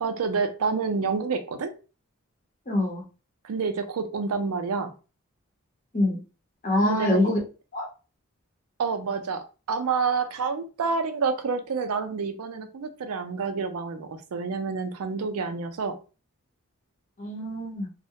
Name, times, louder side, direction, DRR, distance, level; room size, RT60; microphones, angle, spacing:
voice 1, 0.0-1.7 3.4-4.9 6.8-7.3 8.8-16.0, right 5 dB, 85° right, 9 dB, 0.4 m, -28 dB
voice 2, 2.7-3.0 5.9-6.2 6.6-7.4 7.7-7.9 17.2-17.9, left 1 dB, 35° left, -1 dB, 0.7 m, -24 dB
2.3 x 2.1 x 2.7 m, 0.33 s
head